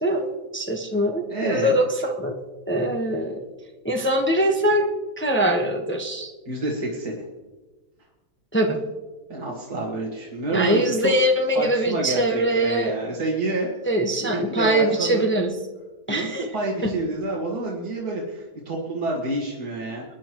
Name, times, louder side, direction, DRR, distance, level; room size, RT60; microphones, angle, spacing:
voice 1, 0.0-2.3 2.7-3.4 3.8-4.9 5.2-6.3 8.5-8.8 10.5-12.9 13.9-15.5 16.1-16.5 16.8-16.9, right 1 dB, 10° left, 2 dB, 1.0 m, -22 dB
voice 2, 1.3-1.8 6.5-7.2 9.3-11.1 11.5-13.7 14.2-15.3 16.1-20.0, right 2 dB, 70° right, -4 dB, 2.4 m, -28 dB
23.5 x 10.5 x 3.1 m, 1.2 s
omnidirectional pair, 1.7 m